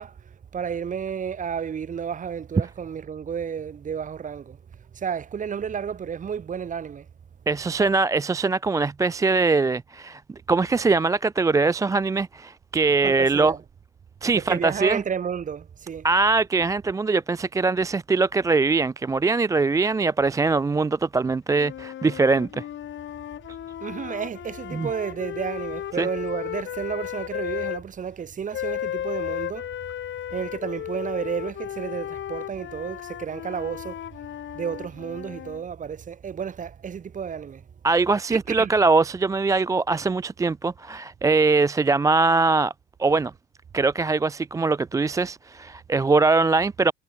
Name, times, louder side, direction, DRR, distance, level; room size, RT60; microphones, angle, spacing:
voice 1, 0.0-4.6 4.9-7.1 13.0-13.6 14.3-16.1 23.8-29.7 30.3-34.0 34.5-37.6 38.3-38.7, right 7 dB, 25° right, 1.7 m, -31 dB
voice 2, 7.5-10.2 10.5-13.6 14.2-15.0 16.0-22.6 24.7-24.9 26.0-26.1 37.8-42.7 43.0-43.3 43.7-46.9, right 3 dB, 10° right, 0.5 m, -22 dB
sound 1, 21.6-27.8 28.5-35.6, left 11 dB, 40° left, 2.3 m, -34 dB
supercardioid pair, 105°, 29 cm